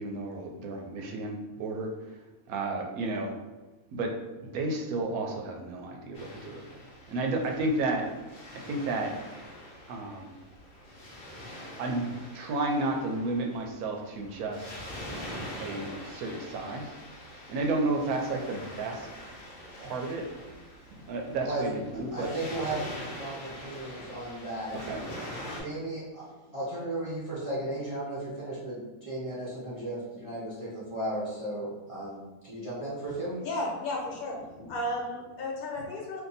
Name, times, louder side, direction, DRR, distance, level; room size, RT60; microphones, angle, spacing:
voice 1, 0.0-2.2 2.5-3.3 3.9-4.1 4.4-6.8 7.1-8.1 8.6-9.1 9.9-10.4 11.8-14.9 15.6-16.9 17.5-19.1 19.8-20.3 20.9-22.3 24.7-25.0, right 2 dB, 75° right, 2 dB, 1.0 m, -32 dB
Waves surf, 6.1-25.6, equal, 45° left, 0.7 m, -44 dB
voice 2, 22.1-24.8 25.6-26.3 26.5-33.4, right 1 dB, 35° right, -9 dB, 0.5 m, -35 dB
voice 3, 33.4-36.2, left 1 dB, 75° left, -1 dB, 1.3 m, -34 dB
2.7 x 2.5 x 3.9 m, 1.1 s
omnidirectional pair, 1.6 m